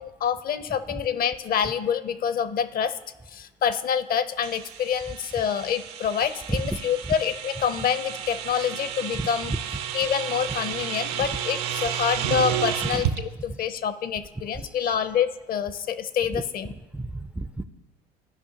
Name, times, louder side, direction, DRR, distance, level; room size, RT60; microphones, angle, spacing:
voice 1, 0.0-3.0 3.3-9.5 9.9-13.1 13.4-16.7, left 8 dB, 45° left, 13 dB, 0.6 m, -26 dB
sound 1, 4.4-13.2, right 10 dB, 75° right, 0.7 m, -32 dB
voice 2, 9.2-9.6 11.2-11.3 12.8-13.0 13.5-13.6 14.5-15.0 16.3-16.4 16.9-17.6, right 2 dB, 5° right, 11 dB, 0.3 m, -31 dB
14.0 x 5.4 x 2.8 m, 1.1 s
hypercardioid pair, 75°, 21 cm